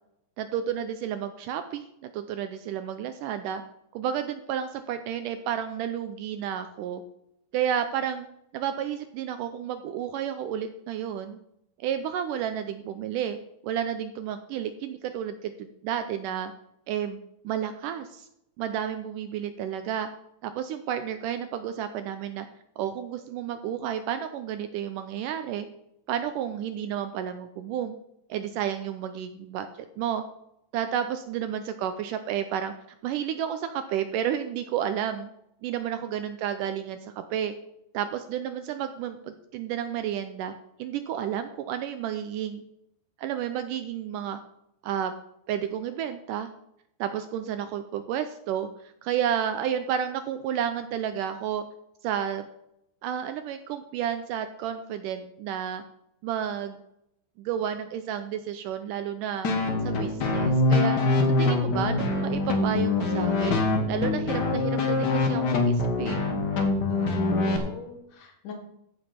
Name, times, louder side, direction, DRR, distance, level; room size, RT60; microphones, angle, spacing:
voice 1, 0.4-1.8 2.1-3.6 3.9-7.0 7.5-8.3 8.5-11.4 11.8-13.4 13.6-16.5 16.9-18.3 18.6-20.1 20.4-22.5 22.8-25.7 26.1-28.0 28.3-29.7 30.0-30.2 30.7-32.7 33.0-35.3 35.6-37.5 37.9-40.5 40.8-42.6 43.2-44.4 44.8-45.1 45.5-46.5 47.0-48.7 49.0-51.6 52.0-52.5 53.0-55.8 56.2-56.8 57.4-59.5 59.8-63.6 63.9-66.2, right 9 dB, 80° right, 9 dB, 2.0 m, -31 dB
sound 1, 59.4-67.6, left 2 dB, 85° left, 0.9 m, -24 dB
voice 2, 66.9-68.5, left 4 dB, 60° left, 3 dB, 3.4 m, -40 dB
14.0 x 5.3 x 5.8 m, 0.78 s
omnidirectional pair, 4.2 m